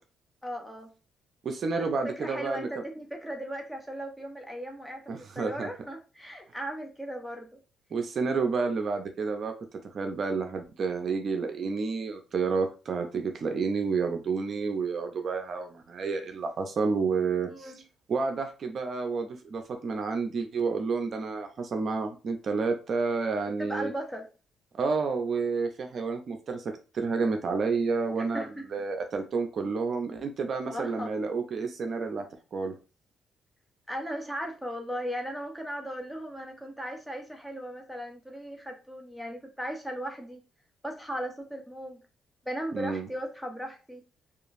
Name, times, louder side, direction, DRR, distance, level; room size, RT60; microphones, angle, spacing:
voice 1, 0.4-0.9 2.2-7.5 17.5-17.8 23.6-24.3 28.2-28.6 30.7-31.1 33.9-40.4 40.8-42.0 42.4-44.0, equal, ahead, 2 dB, 0.7 m, -37 dB
voice 2, 1.4-2.7 5.1-5.7 7.9-9.5 9.9-17.8 18.1-23.9 24.7-28.4 28.7-32.3 32.5-32.7 42.7-43.1, right 4 dB, 50° right, 5 dB, 0.5 m, -30 dB
2.8 x 2.4 x 2.5 m, 0.33 s
cardioid pair, 90°, 0 cm